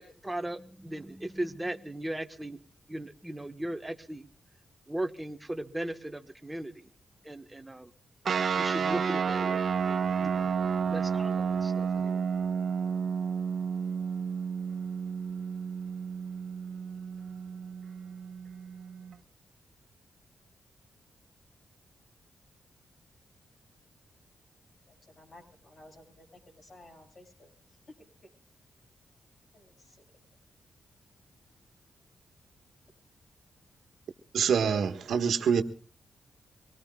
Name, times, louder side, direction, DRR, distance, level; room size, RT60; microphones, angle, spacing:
voice 1, 0.0-2.6 2.9-4.3 4.9-6.7 7.2-7.9 8.6-10.5 10.9-12.2, right 1 dB, 10° right, 1.4 m, -37 dB
sound 1, 8.2-19.2, right 6 dB, 60° right, 1.3 m, -31 dB
voice 2, 24.9-27.5 29.5-30.0, left 1 dB, 45° left, 6.3 m, -55 dB
voice 3, 34.3-35.6, right 7 dB, 80° right, 1.5 m, -25 dB
25.0 x 18.5 x 2.4 m
cardioid pair, 90°, 0 cm